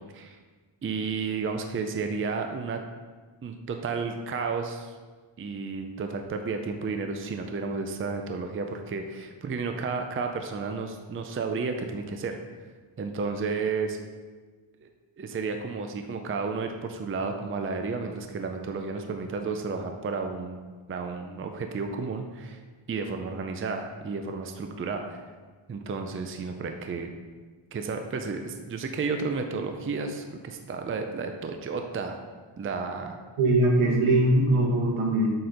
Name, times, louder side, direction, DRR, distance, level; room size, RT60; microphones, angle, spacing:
voice 1, 0.8-2.8 3.4-4.9 5.4-12.4 13.0-14.0 14.8-14.9 15.2-20.6 20.9-22.6 22.9-25.2 25.7-27.1 27.7-32.2 32.6-33.2, right 4 dB, 25° right, 5 dB, 0.5 m, -32 dB
voice 2, 33.4-35.3, right 1 dB, 80° right, -1 dB, 1.6 m, -21 dB
7.8 x 4.4 x 5.1 m, 1.4 s
wide cardioid pair, 150°, 49 cm